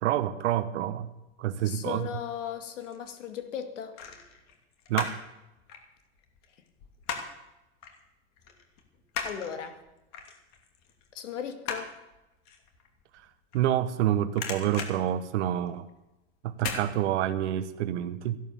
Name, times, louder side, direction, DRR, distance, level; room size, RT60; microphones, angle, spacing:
voice 1, 0.0-1.1 1.4-2.1 4.9-5.2 13.5-15.9 16.4-18.4, right 11 dB, 75° right, 11 dB, 1.1 m, -28 dB
voice 2, 1.6-4.0 9.2-9.8 11.1-11.9, left 8 dB, 90° left, 7 dB, 2.4 m, -37 dB
sound 1, 2.5-3.1 3.9-5.3 5.6-7.5 7.8-8.0 8.4-14.0 14.3-15.9 16.6-16.9 17.3-17.4, left 6 dB, 50° left, 2.8 m, -38 dB
14.5 x 11.5 x 6.9 m, 0.97 s
supercardioid pair, 135°, 36 cm